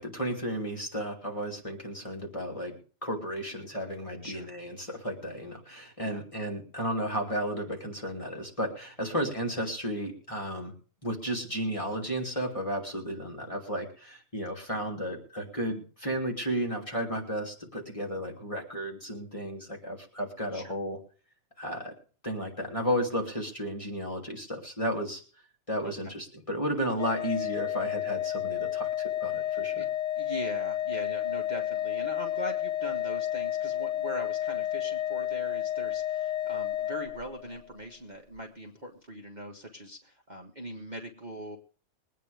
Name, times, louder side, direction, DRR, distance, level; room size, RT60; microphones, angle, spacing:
voice 1, 0.0-2.7 3.0-10.7 11.0-21.0 21.6-21.9 22.2-25.2 25.7-29.9, equal, 20° left, -1 dB, 2.9 m, -33 dB
Organ, 27.0-37.7, left 12 dB, 50° left, 1.3 m, -31 dB
voice 2, 29.5-29.9 30.2-41.6, right 1 dB, 30° right, 0 dB, 1.8 m, -41 dB
22.5 x 9.3 x 3.5 m, 0.40 s
omnidirectional pair, 1.5 m